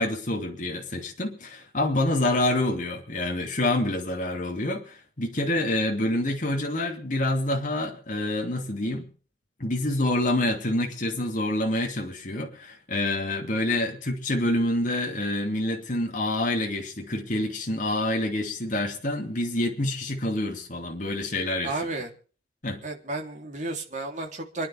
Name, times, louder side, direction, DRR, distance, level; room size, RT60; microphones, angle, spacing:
voice 1, 0.0-9.1 9.6-21.8 22.6-22.8, left 1 dB, 45° left, 2.8 m, -27 dB
voice 2, 21.6-22.1 22.8-24.7, right 2 dB, 40° right, 3.6 m, -32 dB
29.0 x 10.0 x 3.6 m
head